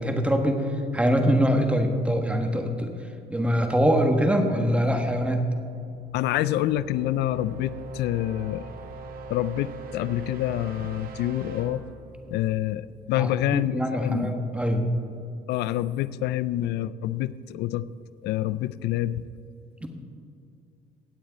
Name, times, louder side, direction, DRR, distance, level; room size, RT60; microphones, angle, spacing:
voice 1, 0.0-2.9 3.3-5.5 13.1-14.9 19.8-19.9, equal, 5° right, 4 dB, 1.4 m, -23 dB
sound 1, 5.8-13.6, right 3 dB, 60° right, 1.5 m, -42 dB
voice 2, 6.1-8.7 9.3-11.8 12.3-14.3 15.5-17.9 18.2-19.2, left 13 dB, 80° left, 16 dB, 0.4 m, -27 dB
16.5 x 8.7 x 4.0 m, 2.5 s
cardioid pair, 110°, 17 cm